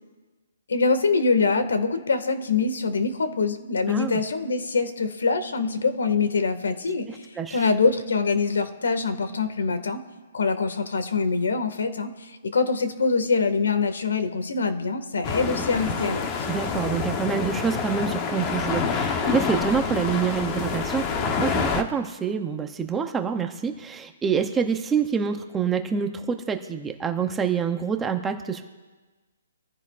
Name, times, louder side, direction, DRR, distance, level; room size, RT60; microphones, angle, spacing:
voice 1, 0.7-10.0 10.3-16.3, left 4 dB, 85° left, 8 dB, 1.9 m, -24 dB
voice 2, 3.9-4.2 7.1-7.6 16.5-28.6, right 6 dB, 10° right, 6 dB, 0.7 m, -27 dB
sound 1, 15.2-21.8, left 5 dB, 20° left, 1.0 m, -27 dB
26.0 x 15.0 x 2.5 m, 1.3 s
hypercardioid pair, 170°, 0 cm